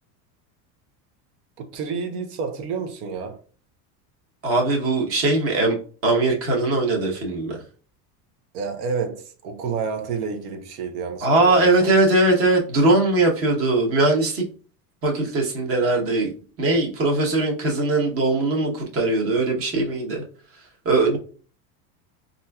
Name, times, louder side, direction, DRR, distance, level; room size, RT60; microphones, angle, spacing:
voice 1, 1.7-3.4 8.5-11.7, right 5 dB, 90° right, 0.7 m, -29 dB
voice 2, 4.4-5.8 6.0-7.6 11.2-14.4 15.0-16.3 16.6-20.2 20.8-21.2, right 2 dB, 30° right, 0.9 m, -20 dB
4.1 x 2.6 x 2.2 m
supercardioid pair, 135°, 44 cm